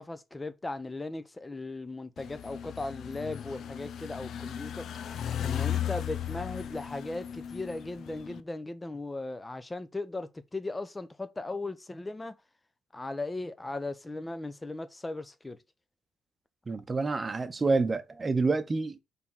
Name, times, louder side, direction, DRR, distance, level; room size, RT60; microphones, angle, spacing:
voice 1, 0.0-4.9 5.4-12.4 12.9-15.6, left 2 dB, 20° left, 0.9 m, -37 dB
sound 1, 2.2-8.4, left 10 dB, 65° left, 0.5 m, -36 dB
voice 2, 16.7-19.0, right 3 dB, 30° right, 0.9 m, -28 dB
4.6 x 3.7 x 5.6 m
cardioid pair, 90°, 0 cm